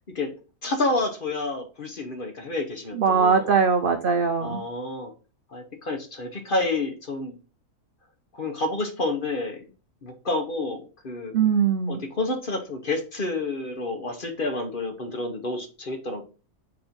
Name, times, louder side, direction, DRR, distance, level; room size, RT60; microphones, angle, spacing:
voice 1, 0.6-3.5 4.4-5.1 5.5-7.4 8.3-9.6 10.0-11.3 11.9-16.2, left 2 dB, 40° left, 5 dB, 1.0 m, -29 dB
voice 2, 3.0-4.6 11.3-12.0, right 6 dB, 65° right, 7 dB, 0.5 m, -21 dB
4.4 x 4.2 x 5.2 m, 0.34 s
omnidirectional pair, 1.6 m